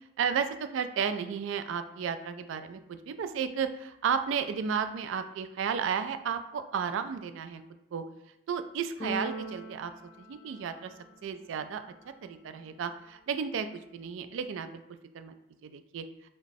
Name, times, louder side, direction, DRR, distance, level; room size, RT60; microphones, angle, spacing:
voice 1, 0.2-7.6 7.9-8.0 8.5-9.9 10.2-10.9 11.2-11.8 12.2-13.7 13.9-14.7 15.1-15.3 15.6-16.0, right 7 dB, 75° right, 9 dB, 0.3 m, -33 dB
Keyboard (musical), 9.0-11.1, right 1 dB, 30° left, 0.3 m, -40 dB
5.1 x 2.0 x 2.6 m, 0.83 s
head